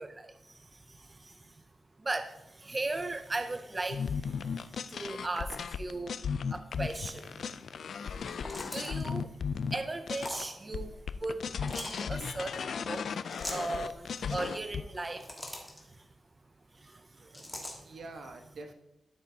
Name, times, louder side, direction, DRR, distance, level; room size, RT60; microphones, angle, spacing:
voice 1, 0.0-1.6 2.0-6.2 6.5-7.7 7.9-8.3 8.6-9.4 9.7-16.1 16.7-18.0, right 2 dB, 25° right, 8 dB, 0.4 m, -38 dB
sound 1, 3.9-10.4 10.7-14.8, left 6 dB, 70° left, 0.3 m, -36 dB
sound 2, 8.2-9.0 10.1-10.5 11.5-12.0 13.3-13.7 14.9-15.8 17.3-17.8, left 1 dB, 15° left, 1.5 m, -41 dB
voice 2, 17.2-17.6 17.8-18.7, right 2 dB, 75° right, 4 dB, 1.1 m, -47 dB
12.0 x 6.5 x 2.7 m, 0.89 s
wide cardioid pair, 140°, 0 cm